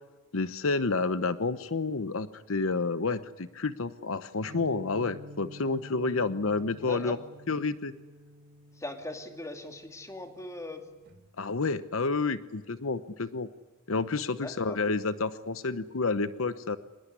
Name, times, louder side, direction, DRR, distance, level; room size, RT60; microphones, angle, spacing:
voice 1, 0.3-7.2 7.5-7.9 11.4-13.5 13.9-16.8, left 3 dB, 75° left, 13 dB, 0.9 m, -29 dB
sound 1, 4.5-11.3, equal, 50° right, 3.6 m, -50 dB
voice 2, 6.8-7.2 8.8-10.8 14.4-14.9, left 1 dB, 15° left, 5 dB, 2.5 m, -40 dB
25.0 x 20.0 x 9.7 m, 1.3 s
head